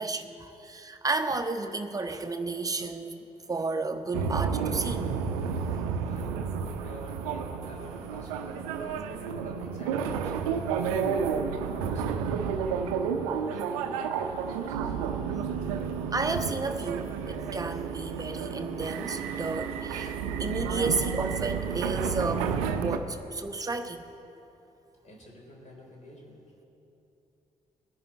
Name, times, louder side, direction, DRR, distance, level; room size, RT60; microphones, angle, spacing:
voice 1, 0.0-3.2 3.5-5.1 15.3-15.6 16.1-20.1 20.4-24.0, right 3 dB, 20° right, 6 dB, 1.0 m, -32 dB
sound 1, 4.1-23.0, right 6 dB, 70° right, 0.7 m, -31 dB
voice 2, 6.0-10.5 11.2-12.2 12.6-15.0 25.0-26.4, equal, 40° left, -1 dB, 3.3 m, -47 dB
18.5 x 10.5 x 4.3 m, 2.9 s
figure-of-eight pair, 40°, 19 cm